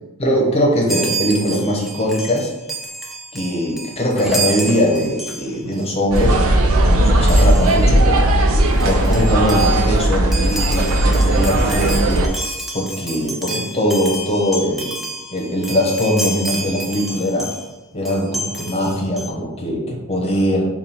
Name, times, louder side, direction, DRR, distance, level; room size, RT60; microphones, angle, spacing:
voice 1, 0.2-2.5 3.3-6.4 6.8-8.2 8.8-12.2 12.7-14.9 15.3-17.5 17.9-20.7, equal, 30° left, -1 dB, 0.8 m, -20 dB
Chime, 0.9-5.8 6.1-6.4 7.3-7.9 8.4-8.5 8.7-17.7 18.0-19.3, right 2 dB, ahead, 0.4 m, -29 dB
sound 1, 6.1-12.3, right 1 dB, 80° right, 0.5 m, -16 dB
3.5 x 2.3 x 4.2 m, 1.0 s
head